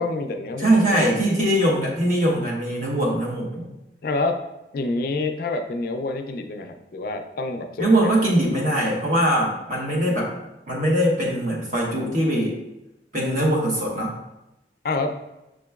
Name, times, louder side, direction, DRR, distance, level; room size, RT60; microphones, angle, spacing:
voice 1, 0.0-1.1 4.0-4.4 4.7-8.1 14.8-15.2, left 3 dB, 55° left, 6 dB, 0.3 m, -27 dB
voice 2, 0.6-3.7 7.8-10.3 10.7-12.5 13.1-14.1, right 1 dB, 45° right, -3 dB, 1.1 m, -21 dB
6.5 x 2.9 x 2.3 m, 0.93 s
head